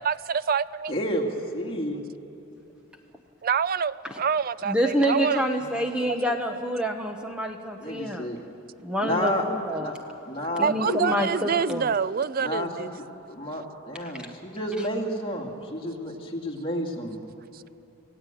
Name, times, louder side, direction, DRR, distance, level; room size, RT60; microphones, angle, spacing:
voice 1, 0.0-0.9 3.4-5.4 10.6-12.9, right 6 dB, 45° right, 17 dB, 0.5 m, -26 dB
voice 2, 0.9-1.3 1.5-2.0 5.6-5.7 7.8-8.4 9.0-9.5 9.8-10.0 10.3-11.2 12.4-12.9 13.3-17.2, equal, 25° left, 0 dB, 2.4 m, -30 dB
voice 3, 4.6-8.3 8.8-9.9 10.6-11.9 14.0-14.3 14.8-14.9, equal, 5° right, 3 dB, 1.0 m, -27 dB
27.0 x 16.5 x 9.2 m, 2.9 s
head